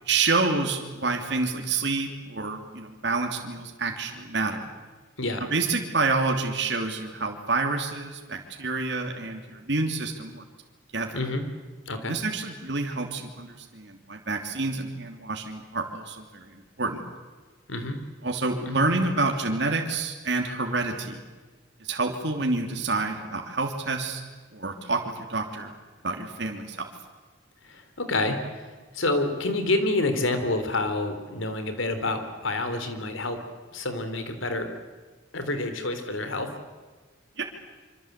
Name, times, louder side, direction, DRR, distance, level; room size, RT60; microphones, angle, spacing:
voice 1, 0.0-4.7 5.5-10.4 10.9-11.2 12.1-17.0 18.2-21.2 21.8-24.2 24.5-25.7 26.0-26.9 37.4-37.5, right 3 dB, 60° right, 2 dB, 2.9 m, -28 dB
voice 2, 5.2-5.5 11.1-11.4 11.9-12.1 17.7-18.0 18.7-18.9 27.7-28.6 28.9-33.4 33.7-34.7 35.3-36.5, left 2 dB, 90° left, 8 dB, 3.7 m, -28 dB
26.0 x 25.5 x 8.2 m, 1.4 s
head